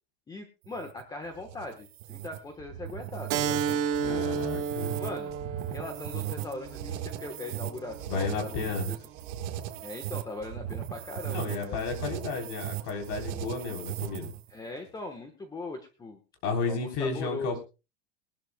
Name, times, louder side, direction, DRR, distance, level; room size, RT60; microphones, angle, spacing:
voice 1, 0.3-4.3 5.0-5.4 5.7-8.6 8.9-9.0 9.8-11.8 14.5-16.2 16.7-17.6, left 2 dB, 10° left, 5 dB, 1.2 m, -40 dB
a nightmare of bumblbeezzzz, 0.6-14.5, right 12 dB, 60° right, 1.7 m, -38 dB
Keyboard (musical), 3.3-8.4, right 7 dB, 40° right, 1.4 m, -33 dB
voice 2, 4.0-5.0 8.1-8.9 11.3-14.3 16.4-17.6, left 4 dB, 45° left, 3 dB, 3.8 m, -32 dB
22.5 x 12.5 x 2.2 m, 0.31 s
supercardioid pair, 165°, 36 cm